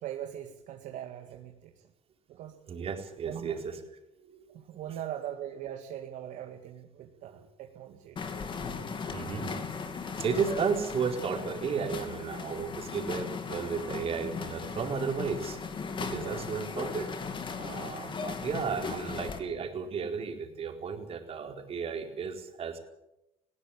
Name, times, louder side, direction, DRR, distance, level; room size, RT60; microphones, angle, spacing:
voice 1, 0.0-1.8 2.3-2.6 3.3-3.6 4.5-8.3 16.1-16.5, right 10 dB, 70° right, 3 dB, 2.1 m, -41 dB
voice 2, 2.7-3.8 4.2-4.5 8.8-9.6 10.2-15.6 16.0-22.8, right 6 dB, 45° right, 4 dB, 4.3 m, -34 dB
sound 1, 8.2-19.4, left 5 dB, 35° left, 3.1 m, -37 dB
20.0 x 16.5 x 8.7 m, 0.87 s
supercardioid pair, 95°, 14 cm